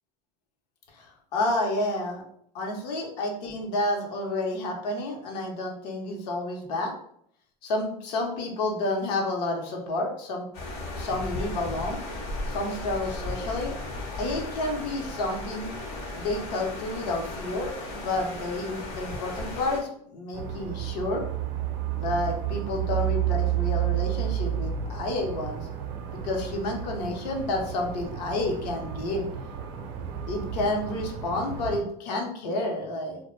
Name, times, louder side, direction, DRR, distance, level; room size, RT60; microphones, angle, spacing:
voice 1, 0.9-2.2 2.5-6.9 7.6-10.4 11.0-12.0 12.5-13.7 14.1-15.7 16.2-21.2 22.0-25.7 26.2-29.3 30.3-33.2, left 2 dB, 80° left, 1 dB, 0.7 m, -30 dB
sound 1, 10.5-19.8, left 2 dB, 55° left, 0.9 m, -36 dB
sound 2, 20.3-31.8, right 11 dB, 65° right, 0.5 m, -31 dB
2.1 x 2.1 x 3.0 m, 0.67 s
hypercardioid pair, 95°, 21 cm